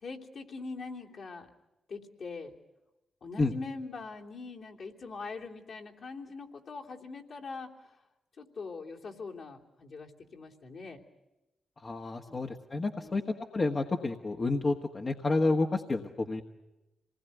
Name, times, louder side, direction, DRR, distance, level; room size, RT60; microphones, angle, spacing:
voice 1, 0.0-1.5 1.9-2.5 3.2-7.9 8.4-11.0 12.3-12.6 13.0-13.2, left 4 dB, 65° left, -1 dB, 3.1 m, -42 dB
voice 2, 11.8-13.2 13.5-16.4, left 3 dB, 45° left, 2 dB, 1.5 m, -30 dB
26.5 x 20.0 x 9.3 m, 1.0 s
supercardioid pair, 45°, 0 cm